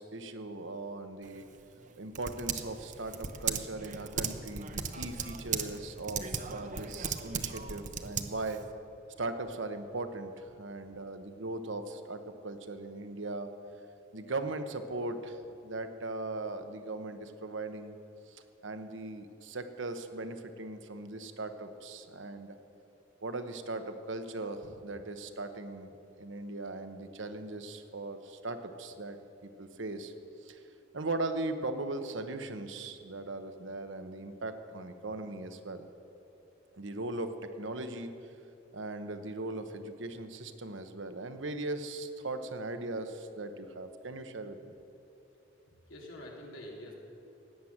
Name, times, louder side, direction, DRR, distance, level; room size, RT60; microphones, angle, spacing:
voice 1, 0.0-1.5 2.0-8.6 9.2-13.5 14.1-18.0 18.3-22.5 23.2-30.1 30.4-30.6 30.9-35.9 36.8-38.1 38.7-44.7, right 2 dB, 70° right, 8 dB, 1.1 m, -39 dB
Typing, 1.2-8.7, right 6 dB, 40° right, 0.8 m, -37 dB
voice 2, 45.7-46.9, left 1 dB, 85° left, -2 dB, 3.2 m, -46 dB
17.0 x 9.5 x 7.3 m, 2.8 s
head